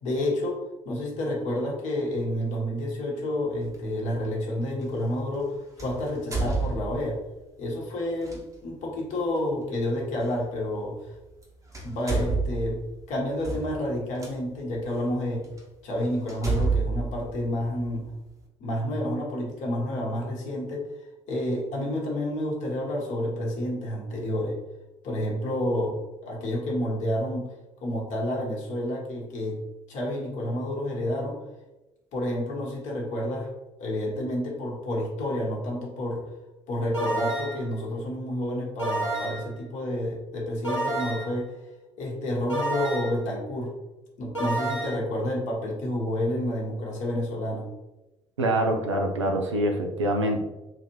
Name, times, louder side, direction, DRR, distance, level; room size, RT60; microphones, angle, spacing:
voice 1, 0.0-7.2 7.6-11.1 11.8-12.8 13.1-15.5 15.8-18.1 18.6-24.6 25.0-27.5 27.8-29.6 29.9-31.4 32.1-33.5 33.8-36.3 36.7-41.5 42.0-43.7 44.2-47.7, left 1 dB, 55° left, -2 dB, 1.0 m, -29 dB
sound 1, 3.7-3.9 5.8-7.3 8.2-8.4 10.3-10.4 11.3-11.4 11.7-14.3 15.0-15.1 15.6-15.7 16.3-18.1, right 3 dB, 20° right, 0.9 m, -29 dB
sound 2, 36.9-37.7 38.8-39.5 40.6-41.4 42.5-43.2 44.3-44.9, right 2 dB, 85° left, 0.7 m, -29 dB
voice 2, 48.4-50.4, right 1 dB, 85° right, 2 dB, 0.4 m, -25 dB
3.9 x 2.5 x 3.0 m, 1.0 s
figure-of-eight pair, 50°, 15 cm